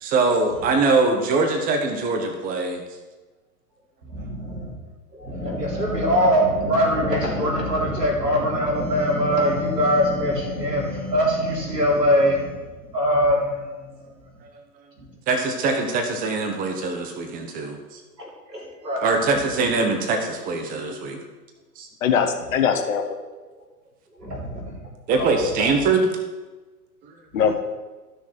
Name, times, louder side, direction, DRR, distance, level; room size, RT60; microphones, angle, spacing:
voice 1, 0.0-2.8 14.5-14.6 15.3-18.0 19.0-21.2 21.8-21.9 25.1-26.1 27.1-27.2, right 3 dB, 20° right, 4 dB, 1.0 m, -22 dB
voice 2, 4.1-4.7 5.2-12.6 12.9-13.7 14.0-14.1 18.2-19.0 24.2-24.8 27.3-27.4, equal, 85° right, -2 dB, 3.1 m, -22 dB
voice 3, 22.0-23.0 25.1-25.3 27.3-27.5, left 7 dB, 55° left, 5 dB, 1.3 m, -21 dB
12.5 x 6.3 x 4.4 m, 1.2 s
figure-of-eight pair, 120°, 48 cm